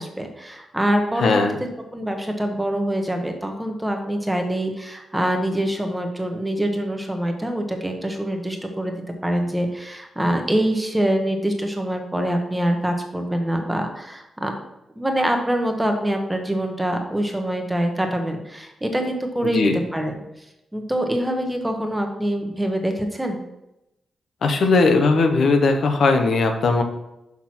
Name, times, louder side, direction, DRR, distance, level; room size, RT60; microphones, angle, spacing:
voice 1, 0.0-1.4 1.9-8.9 9.2-14.5 15.0-20.2 20.7-23.4, right 1 dB, 10° right, 4 dB, 0.9 m, -24 dB
voice 2, 1.2-1.6 19.4-19.8 24.4-26.8, left 3 dB, 60° left, 5 dB, 0.8 m, -18 dB
5.9 x 5.9 x 4.3 m, 0.89 s
wide cardioid pair, 140°, 0 cm